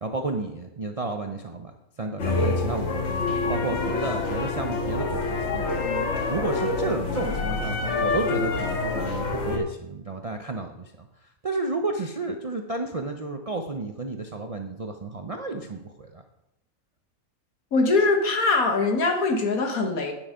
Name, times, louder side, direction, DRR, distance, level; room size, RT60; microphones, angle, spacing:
voice 1, 0.0-1.7 2.0-11.1 11.4-16.2, right 3 dB, 45° right, 4 dB, 0.4 m, -32 dB
sound 1, 2.2-9.6, left 3 dB, 55° left, 1.6 m, -27 dB
voice 2, 17.7-20.1, left 3 dB, 75° left, 4 dB, 1.8 m, -22 dB
9.3 x 7.1 x 5.0 m, 0.88 s
omnidirectional pair, 1.5 m